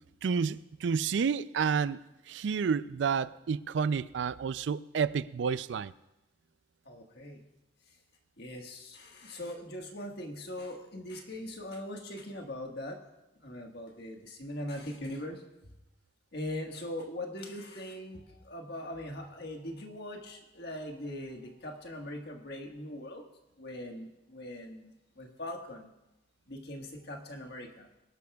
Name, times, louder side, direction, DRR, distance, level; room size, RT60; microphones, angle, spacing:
voice 1, 0.2-2.0 2.3-5.9, right 6 dB, 75° right, 0.4 m, -30 dB
voice 2, 6.8-7.4 8.4-13.0 13.3-15.4 16.3-23.2 23.6-25.9 26.5-27.9, left 1 dB, 60° left, 1.6 m, -41 dB
22.0 x 11.5 x 2.3 m
head